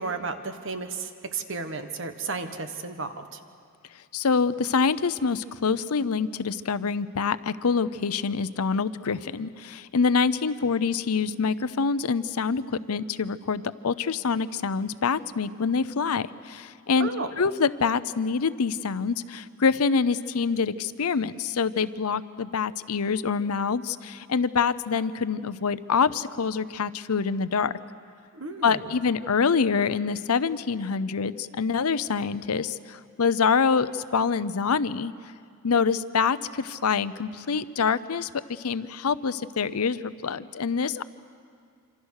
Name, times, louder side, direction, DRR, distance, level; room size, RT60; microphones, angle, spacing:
voice 1, 0.0-3.4 17.0-17.3 28.3-28.8, right 4 dB, 60° right, 8 dB, 1.4 m, -33 dB
voice 2, 4.1-17.1 17.4-27.7 28.6-35.1 35.6-41.0, left 5 dB, 85° left, 15 dB, 0.7 m, -26 dB
26.5 x 26.0 x 6.5 m, 2.2 s
head